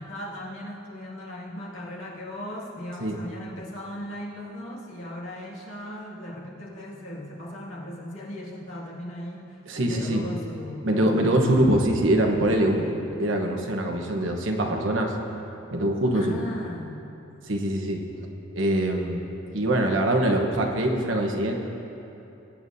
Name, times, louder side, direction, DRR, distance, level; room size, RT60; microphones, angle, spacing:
voice 1, 0.0-11.6 12.5-13.1 16.1-17.1, left 1 dB, 80° left, -6 dB, 2.3 m, -38 dB
voice 2, 9.7-10.2 10.8-12.9 13.2-15.1 15.7-16.4 17.5-18.0 18.5-19.2 19.5-21.6, right 1 dB, 70° right, 2 dB, 1.2 m, -23 dB
21.0 x 9.1 x 2.7 m, 3.0 s
head